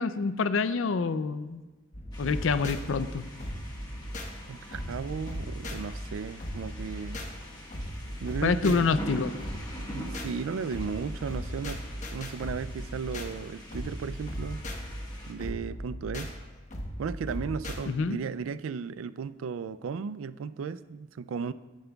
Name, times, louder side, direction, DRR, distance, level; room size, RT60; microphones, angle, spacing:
voice 1, 0.0-1.6 2.2-3.2 8.4-9.4 17.9-18.2, left 4 dB, 70° left, 13 dB, 0.4 m, -27 dB
sound 1, 1.9-17.8, equal, 40° left, 1.1 m, -38 dB
sound 2, 2.1-15.3, equal, 20° left, 1.5 m, -45 dB
voice 2, 4.5-7.2 8.2-9.0 9.9-14.6 15.3-16.3 17.0-21.5, right 6 dB, 85° right, 15 dB, 0.3 m, -35 dB
12.5 x 10.5 x 2.3 m, 1.2 s
head